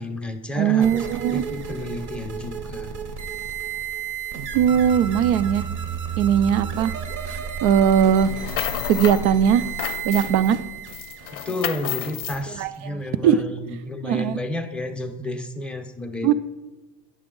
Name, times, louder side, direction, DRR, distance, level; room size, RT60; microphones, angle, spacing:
voice 1, 0.0-2.9 11.5-16.3, left 1 dB, 5° left, 5 dB, 0.6 m, -31 dB
voice 2, 0.6-1.4 4.5-5.6 6.2-6.9 7.3-8.3 8.9-9.6 10.0-10.6 12.6-13.4 14.0-14.4 16.2-16.3, right 9 dB, 90° right, 14 dB, 0.5 m, -19 dB
sound 1, 0.8-12.7, right 6 dB, 50° right, 0.7 m, -32 dB
sound 2, 8.2-9.3 9.6-10.5 10.9-12.4, left 12 dB, 55° left, 0.6 m, -31 dB
9.1 x 6.0 x 3.7 m, 1.2 s
cardioid pair, 120°, 41 cm